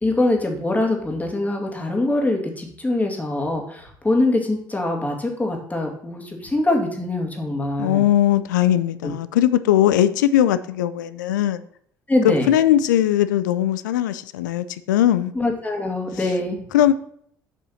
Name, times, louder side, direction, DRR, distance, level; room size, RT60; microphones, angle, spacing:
voice 1, 0.0-8.1 9.0-9.1 12.1-12.5 15.3-16.6, left 2 dB, 15° left, 1 dB, 2.2 m, -23 dB
voice 2, 7.8-11.6 12.2-15.3 16.7-16.9, left 12 dB, 75° left, 14 dB, 0.5 m, -19 dB
7.1 x 5.5 x 5.6 m, 0.66 s
figure-of-eight pair, 55°, 10 cm